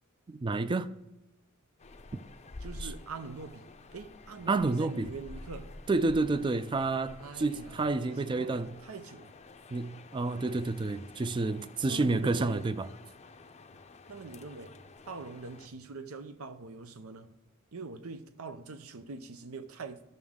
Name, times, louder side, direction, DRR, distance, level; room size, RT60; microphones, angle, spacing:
voice 1, 0.3-0.9 2.1-2.2 2.8-2.9 4.5-5.1 5.9-8.7 9.7-12.9, right 3 dB, 20° right, 0.3 m, -29 dB
sound 1, 1.8-15.7, left 2 dB, 30° left, 0.5 m, -50 dB
voice 2, 2.6-3.7 3.9-5.7 7.2-9.3 11.9-12.6 14.1-14.7 15.1-17.3 17.7-20.0, right 4 dB, 90° right, 0.7 m, -43 dB
13.0 x 6.1 x 3.6 m
head